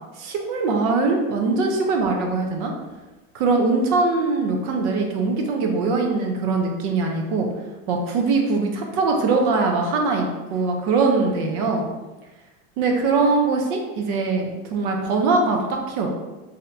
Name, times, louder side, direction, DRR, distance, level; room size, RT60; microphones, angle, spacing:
voice 1, 0.2-2.7 3.3-7.5 7.9-11.9 12.8-16.1, right 3 dB, 60° right, 2 dB, 0.7 m, -22 dB
2.8 x 2.2 x 3.7 m, 1.1 s
cardioid pair, 150°, 31 cm